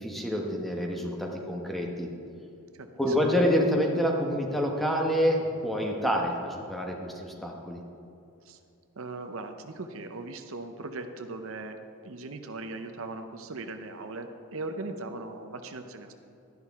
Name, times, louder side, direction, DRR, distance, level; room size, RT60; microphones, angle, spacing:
voice 1, 0.0-2.1 3.0-7.8, equal, ahead, 0 dB, 1.0 m, -27 dB
voice 2, 9.0-11.8 12.0-16.1, right 3 dB, 65° right, 7 dB, 0.7 m, -39 dB
12.0 x 11.0 x 3.6 m, 2.5 s
head